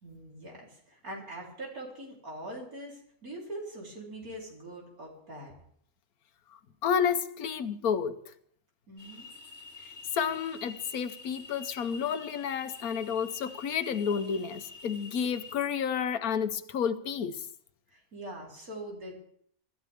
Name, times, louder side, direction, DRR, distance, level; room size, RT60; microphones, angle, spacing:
voice 1, 0.0-5.5 8.9-9.3 17.9-19.1, right 1 dB, 85° right, 4.3 m, -43 dB
voice 2, 6.8-8.2 10.1-17.4, left 7 dB, 85° left, 1.4 m, -30 dB
sound 1, 9.0-15.6, left 4 dB, 35° left, 1.7 m, -47 dB
25.0 x 13.5 x 3.6 m
omnidirectional pair, 1.5 m